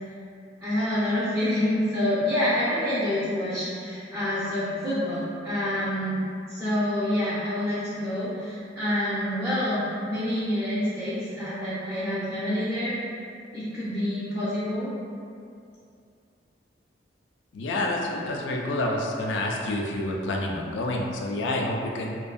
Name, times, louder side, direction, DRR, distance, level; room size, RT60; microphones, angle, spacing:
voice 1, 0.6-12.9 13.5-14.9, left 1 dB, 10° right, -11 dB, 0.4 m, -27 dB
voice 2, 17.5-22.2, left 1 dB, 80° left, 0 dB, 0.3 m, -28 dB
2.5 x 2.2 x 2.3 m, 2.4 s
head